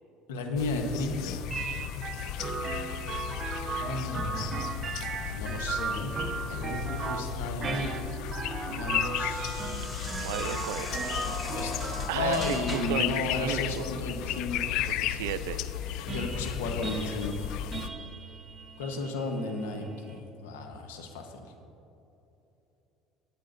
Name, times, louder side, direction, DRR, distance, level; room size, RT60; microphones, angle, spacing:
voice 1, 0.3-1.4 3.7-4.6 5.3-6.2 6.5-7.9 8.7-9.8 11.5-15.2 16.1-17.6 18.8-21.5, left 3 dB, 90° left, 5 dB, 1.1 m, -34 dB
sound 1, 0.6-17.9, left 11 dB, 70° left, 0.3 m, -35 dB
sound 2, 1.5-20.2, right 4 dB, 35° right, 1.0 m, -37 dB
sound 3, 7.7-13.1, left 1 dB, 15° left, 2.3 m, -41 dB
voice 2, 10.1-11.2 12.1-13.9 14.9-15.6, right 11 dB, 85° right, 12 dB, 0.5 m, -34 dB
16.0 x 9.5 x 2.6 m, 3.0 s
supercardioid pair, 90°, 0 cm